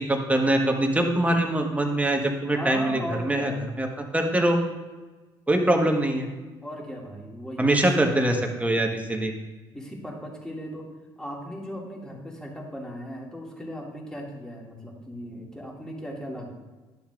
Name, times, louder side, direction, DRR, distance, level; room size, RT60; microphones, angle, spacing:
voice 1, 0.0-3.5 3.8-4.6 5.5-6.3 7.6-9.3, right 1 dB, 10° right, 3 dB, 1.3 m, -23 dB
voice 2, 2.5-3.7 6.6-7.9 9.7-10.9 11.2-16.5, equal, 5° left, -2 dB, 2.2 m, -37 dB
11.5 x 7.1 x 2.5 m, 1.2 s
hypercardioid pair, 65°, 12 cm